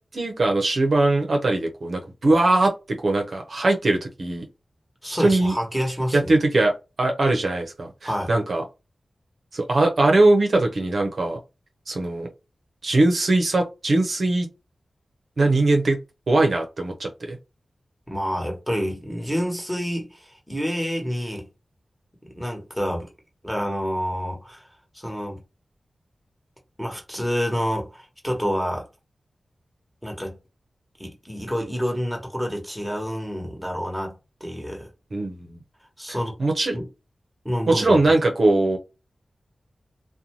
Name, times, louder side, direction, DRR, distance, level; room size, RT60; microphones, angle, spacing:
voice 1, 0.0-4.4 5.1-5.6 6.1-8.6 9.5-11.4 11.9-12.3 12.8-14.5 15.4-16.0 16.3-17.4 35.1-35.6 36.4-36.8 37.7-38.8, right 2 dB, 70° right, 0.6 m, -21 dB
voice 2, 5.0-6.3 8.0-8.3 18.1-21.5 22.2-23.1 23.4-24.7 24.9-25.4 26.8-28.9 30.0-30.3 31.0-34.9 36.0-36.4 36.7-36.9 37.4-38.0, equal, ahead, 1.1 m, -28 dB
2.5 x 2.2 x 2.9 m
cardioid pair, 50°, 0 cm